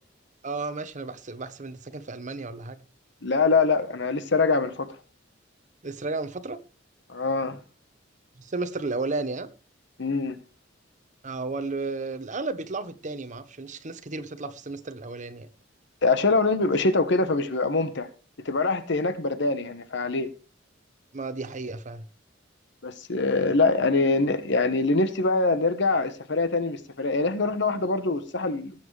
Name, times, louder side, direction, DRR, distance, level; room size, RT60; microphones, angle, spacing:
voice 1, 0.4-2.8 5.8-6.6 8.4-9.5 11.2-15.5 21.1-22.1, right 3 dB, 40° right, 1.0 m, -33 dB
voice 2, 3.2-4.9 7.1-7.6 10.0-10.4 16.0-18.1 18.4-20.3 22.8-28.7, left 3 dB, 65° left, 1.1 m, -24 dB
18.5 x 7.2 x 3.2 m
head